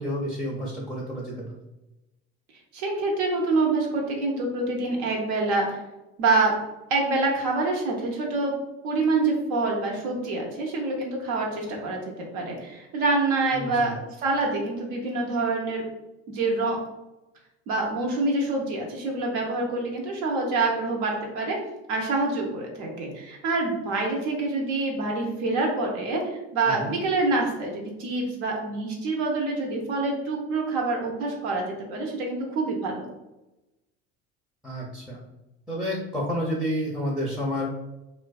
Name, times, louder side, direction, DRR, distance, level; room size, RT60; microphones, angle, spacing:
voice 1, 0.0-1.6 13.5-13.9 26.8-26.9 34.6-35.2 35.7-37.7, equal, ahead, -4 dB, 0.5 m, -30 dB
voice 2, 2.7-5.8 6.2-6.5 6.9-8.5 8.8-15.8 16.3-16.8 17.7-21.6 21.9-33.1, right 3 dB, 90° right, 0 dB, 0.7 m, -26 dB
2.5 x 2.2 x 2.3 m, 0.97 s
supercardioid pair, 90°, 31 cm